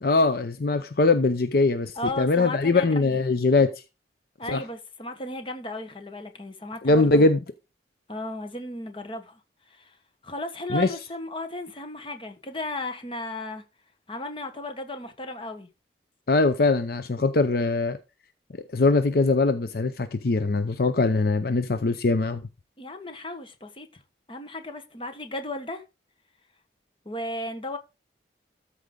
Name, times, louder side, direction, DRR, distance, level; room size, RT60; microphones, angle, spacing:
voice 1, 0.0-3.7 4.5-4.6 6.8-7.4 10.7-10.9 16.3-18.0 18.7-22.4, left 3 dB, 55° left, 0.6 m, -22 dB
voice 2, 2.0-3.1 4.4-7.3 8.1-9.4 9.7-9.9 10.2-13.6 14.1-15.7 22.8-23.9 24.3-25.8 27.0-27.8, left 1 dB, 30° left, 1.3 m, -35 dB
13.5 x 4.9 x 3.8 m
head